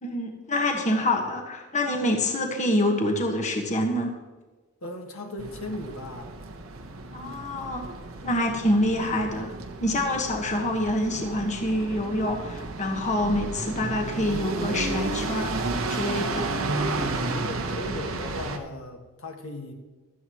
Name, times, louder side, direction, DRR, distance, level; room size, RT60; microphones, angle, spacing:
voice 1, 0.0-4.1 7.1-7.9 8.2-9.5 9.8-16.6, left 1 dB, 35° left, 2 dB, 1.4 m, -26 dB
voice 2, 4.8-6.3 11.1-11.3 17.4-19.7, left 1 dB, 75° left, 3 dB, 1.7 m, -37 dB
sound 1, 5.4-18.6, right 2 dB, 70° right, 1.1 m, -32 dB
15.5 x 12.5 x 3.1 m, 1.2 s
head